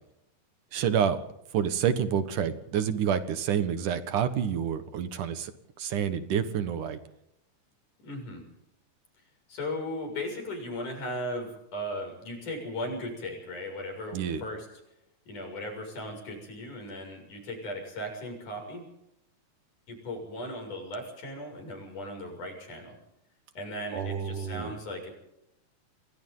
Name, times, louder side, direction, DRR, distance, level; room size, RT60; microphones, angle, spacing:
voice 1, 0.7-1.2 1.5-5.5 5.8-7.0 14.1-14.4 23.9-24.8, right 8 dB, 75° right, 10 dB, 3.0 m, -28 dB
voice 2, 8.0-8.4 9.5-14.7 15.3-18.9 19.9-23.0 23.5-25.1, left 1 dB, 70° left, 3 dB, 8.3 m, -37 dB
29.5 x 22.0 x 4.0 m, 0.82 s
omnidirectional pair, 3.7 m